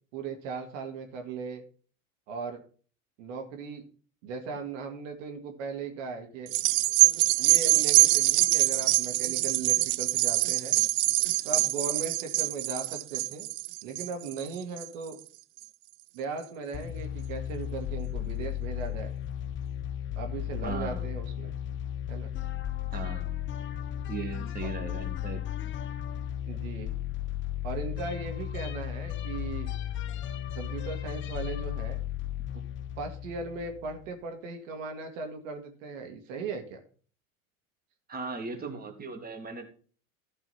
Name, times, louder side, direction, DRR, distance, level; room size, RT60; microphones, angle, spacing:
voice 1, 0.1-1.6 2.3-2.6 3.2-3.9 4.2-6.5 7.4-10.7 11.4-13.5 13.8-15.2 16.1-19.1 20.2-21.5 22.1-22.3 26.5-26.9 27.6-29.7 30.6-32.0 32.5-32.6 33.0-36.8, right 4 dB, 60° right, 4 dB, 2.0 m, -38 dB
sound 1, 6.5-15.1 15.6-15.7, right 22 dB, 45° right, 0.6 m, -24 dB
sound 2, 16.7-34.0, left 11 dB, 25° left, 0.6 m, -35 dB
voice 2, 20.6-21.1 22.9-23.4 24.1-25.4 38.1-39.6, right 4 dB, 20° right, 4 dB, 2.3 m, -37 dB
14.5 x 5.4 x 4.3 m, 0.41 s
hypercardioid pair, 80°, 43 cm